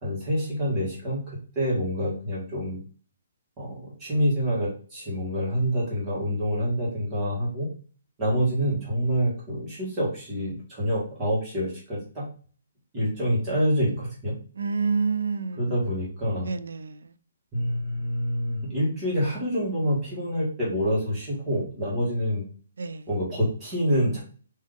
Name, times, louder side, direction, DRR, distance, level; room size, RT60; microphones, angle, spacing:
voice 1, 0.0-2.8 3.6-7.7 8.2-12.3 12.9-14.3 15.6-16.5 17.5-22.4 23.1-24.2, equal, 15° right, 1.4 m, -27 dB
voice 2, 14.6-15.7 16.4-17.1 22.8-23.1, right 5 dB, 90° right, 0.4 m, -28 dB
3.6 x 2.6 x 3.7 m
hypercardioid pair, 175°, 0 cm